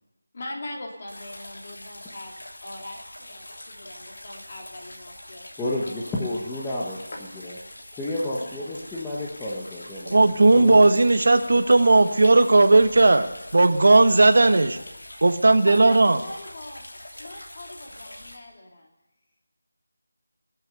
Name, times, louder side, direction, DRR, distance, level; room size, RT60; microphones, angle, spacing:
voice 1, 0.3-2.3 2.6-6.0 7.1-7.2 8.3-9.1 15.7-16.8 17.2-18.9, left 1 dB, 35° left, 0 dB, 2.9 m, -41 dB
sound 1, 1.1-18.4, left 1 dB, 75° left, 3.1 m, -43 dB
voice 2, 5.6-7.1 7.4-7.5 8.0-10.9, left 1 dB, 5° left, -8 dB, 1.3 m, -31 dB
voice 3, 10.0-13.3 13.5-14.8 15.2-16.2, right 2 dB, 60° right, 9 dB, 1.1 m, -16 dB
21.0 x 8.3 x 6.8 m, 1.1 s
figure-of-eight pair, 175°, 0 cm